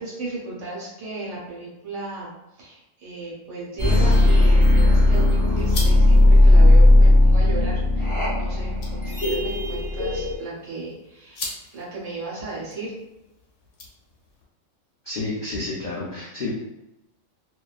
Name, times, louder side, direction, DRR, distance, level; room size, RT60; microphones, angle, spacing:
voice 1, 0.0-8.1 8.3-11.4 11.7-12.9, right 3 dB, 65° right, -6 dB, 1.2 m, -35 dB
sound 1, 3.8-10.4, left 1 dB, 25° left, 0.4 m, -16 dB
sound 2, 4.1-14.4, left 2 dB, 65° left, 1.0 m, -42 dB
voice 2, 15.0-16.5, left 3 dB, 90° left, -6 dB, 0.4 m, -30 dB
2.6 x 2.2 x 2.3 m, 0.94 s
omnidirectional pair, 1.4 m